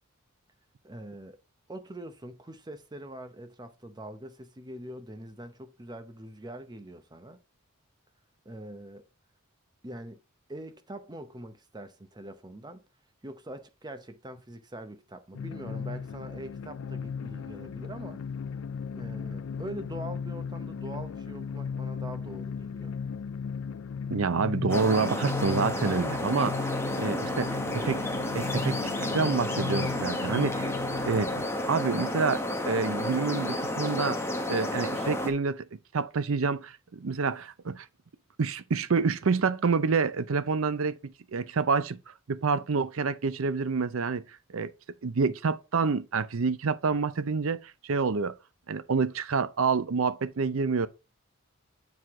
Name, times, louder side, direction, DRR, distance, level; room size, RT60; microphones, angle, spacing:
voice 1, 0.8-1.4 1.7-7.4 8.4-9.0 9.8-10.2 10.5-12.8 13.2-18.2 18.9-22.9, right 1 dB, 20° right, 0.8 m, -43 dB
sound 1, 15.3-31.5, left 6 dB, 60° left, 0.4 m, -36 dB
voice 2, 24.1-26.7 27.0-28.0 28.3-30.7 31.1-31.3 31.7-34.2 34.5-35.7 35.9-37.9 38.4-42.0 42.3-44.2 44.5-44.7 45.0-48.3 48.7-50.9, right 5 dB, 65° right, 0.6 m, -28 dB
sound 2, 24.7-35.3, left 1 dB, 10° left, 0.9 m, -31 dB
7.6 x 4.8 x 3.6 m
head